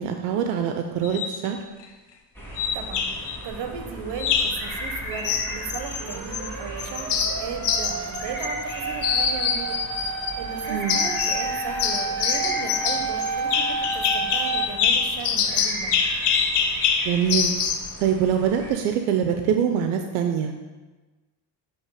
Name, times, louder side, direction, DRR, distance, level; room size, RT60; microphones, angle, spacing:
voice 1, 0.0-1.6 10.7-11.0 17.0-17.5 18.0-20.6, right 8 dB, 90° right, 5 dB, 0.6 m, -24 dB
sound 1, 1.0-1.4 2.6-3.4 4.2-4.6 5.2-6.5 6.8-8.7 9.0-10.4 10.9-11.5 11.8-17.9, left 6 dB, 55° left, 0.8 m, -25 dB
sound 2, 2.3-18.7, equal, 5° left, 1.8 m, -37 dB
voice 2, 2.7-3.1 3.4-16.0, right 6 dB, 60° right, 6 dB, 1.0 m, -36 dB
sound 3, 6.0-14.7, right 4 dB, 35° right, 0.8 m, -31 dB
7.3 x 3.0 x 4.7 m, 1.2 s
supercardioid pair, 80°, 48 cm